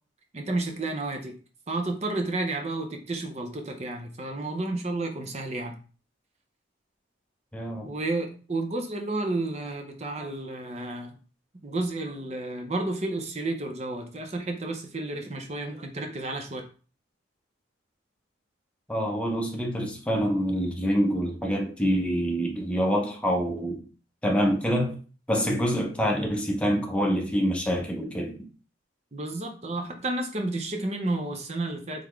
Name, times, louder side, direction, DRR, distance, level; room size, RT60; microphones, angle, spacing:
voice 1, 0.3-1.4 1.7-5.8 7.8-11.1 11.6-16.6 29.1-32.1, right 2 dB, 35° right, 0.6 m, -31 dB
voice 2, 7.5-7.9 18.9-23.8 24.2-24.9 25.3-28.4, equal, 5° left, 0.7 m, -26 dB
4.0 x 3.5 x 3.1 m
head